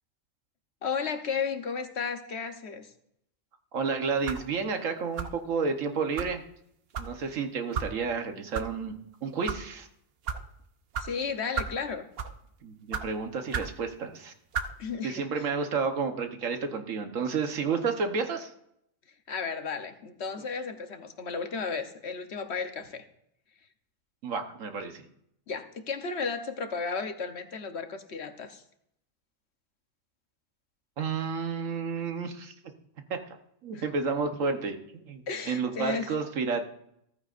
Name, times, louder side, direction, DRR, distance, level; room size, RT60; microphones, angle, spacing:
voice 1, 0.8-2.9 11.0-12.1 14.8-15.5 19.3-23.0 25.5-28.6 33.7-33.8 35.3-36.2, left 5 dB, 55° left, 7 dB, 1.1 m, -34 dB
voice 2, 3.7-6.4 7.0-8.9 9.2-9.9 12.6-14.3 15.0-18.5 24.2-25.0 31.0-32.5 33.1-33.2 33.6-36.6, right 5 dB, 75° right, 6 dB, 1.4 m, -31 dB
sound 1, 4.2-4.5 5.2-5.4 6.2-6.3 6.9-7.1 7.7-7.9 8.5-8.7 9.3-9.6 10.2-10.4 10.9-11.1 11.5-11.8 12.1-12.4 12.9-13.1 13.5-13.7 14.5-14.7, right 6 dB, 55° right, 0.9 m, -32 dB
15.0 x 14.5 x 2.5 m, 0.75 s
omnidirectional pair, 1.4 m